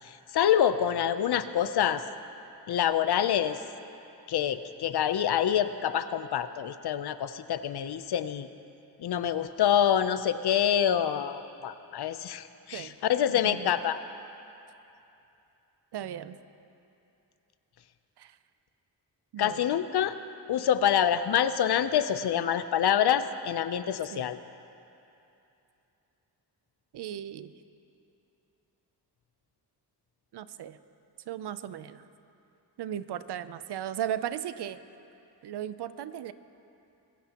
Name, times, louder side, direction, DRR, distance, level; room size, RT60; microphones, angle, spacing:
voice 1, 0.0-2.0 2.7-3.6 4.3-8.5 9.0-14.0 19.4-20.2 20.5-24.4, left 9 dB, 65° left, 12 dB, 0.7 m, -26 dB
voice 2, 13.3-13.7 15.9-16.4 18.2-18.4 19.3-19.7 24.1-24.3 26.9-27.5 30.3-30.8 31.3-32.1 32.8-34.8 35.4-36.3, right 10 dB, 70° right, 13 dB, 0.6 m, -36 dB
24.5 x 15.5 x 3.0 m, 2.8 s
cardioid pair, 90°, 41 cm